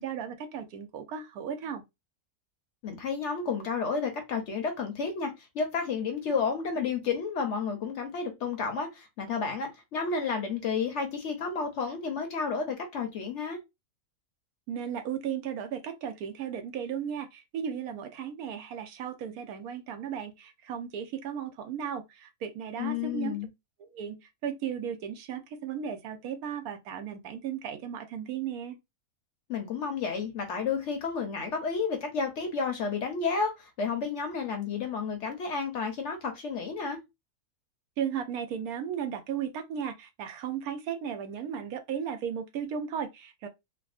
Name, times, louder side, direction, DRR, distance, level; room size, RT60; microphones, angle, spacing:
voice 1, 0.0-1.8 14.7-23.4 23.8-28.8 38.0-43.5, right 8 dB, 80° right, 1.1 m, -35 dB
voice 2, 2.8-13.6 22.8-23.5 29.5-37.0, left 5 dB, 60° left, 0.8 m, -31 dB
3.4 x 2.1 x 2.4 m
omnidirectional pair, 1.6 m